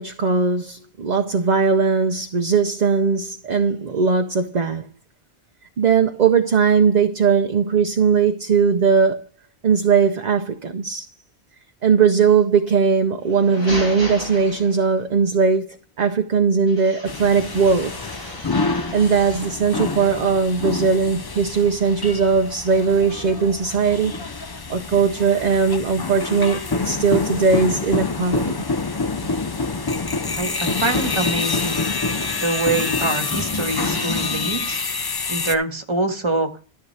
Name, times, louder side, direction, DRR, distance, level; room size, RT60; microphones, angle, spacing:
voice 1, 0.0-4.9 5.8-9.2 9.6-11.1 11.8-15.6 16.0-17.9 18.9-24.1 24.7-28.6, right 5 dB, 50° right, 0.7 m, -19 dB
sound 1, 13.2-15.1 16.7-19.7, left 2 dB, 65° left, 5.4 m, -35 dB
sound 2, 17.1-35.5, left 3 dB, 30° left, 0.5 m, -26 dB
voice 2, 30.4-31.9 32.4-34.8 35.3-36.5, right 2 dB, 30° right, 1.4 m, -24 dB
13.5 x 7.0 x 3.3 m
omnidirectional pair, 1.0 m